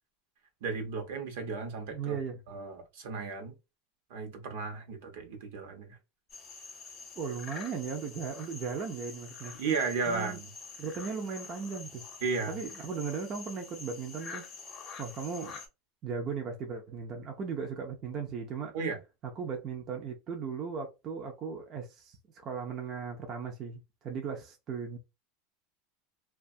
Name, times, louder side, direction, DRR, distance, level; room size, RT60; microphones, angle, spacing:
voice 1, 0.6-2.2 2.5-3.5 4.1-6.0 9.6-10.5 12.2-12.6 18.7-19.0, right 4 dB, 70° right, 0.8 m, -34 dB
voice 2, 1.9-2.4 7.2-9.5 10.1-10.4 10.8-12.0 12.5-14.5 15.0-15.6 16.0-18.8 19.4-22.2 22.4-25.0, right 6 dB, 30° right, 0.4 m, -37 dB
sound 1, 6.3-15.7, left 4 dB, 25° left, 0.6 m, -46 dB
2.4 x 2.3 x 2.6 m
supercardioid pair, 160°, 0 cm